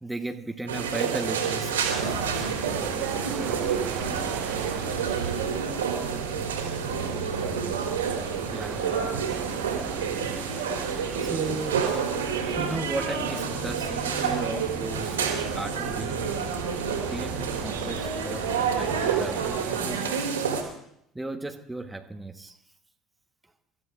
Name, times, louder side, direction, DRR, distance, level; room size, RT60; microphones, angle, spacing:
voice 1, 0.0-1.8 8.4-8.9 11.2-12.0 12.4-15.2 15.5-16.4 17.1-20.3 21.1-22.6, right 2 dB, 10° right, 1.3 m, -36 dB
sound 1, 0.7-20.6, right 6 dB, 90° right, 3.2 m, -29 dB
sound 2, 1.7-20.0, right 6 dB, 40° right, 1.4 m, -39 dB
sound 3, 1.9-19.6, equal, 80° left, 4.2 m, -42 dB
voice 2, 2.6-5.6 5.9-7.9, right 8 dB, 70° right, 2.7 m, -41 dB
28.5 x 14.0 x 2.6 m
hypercardioid pair, 65°, 0 cm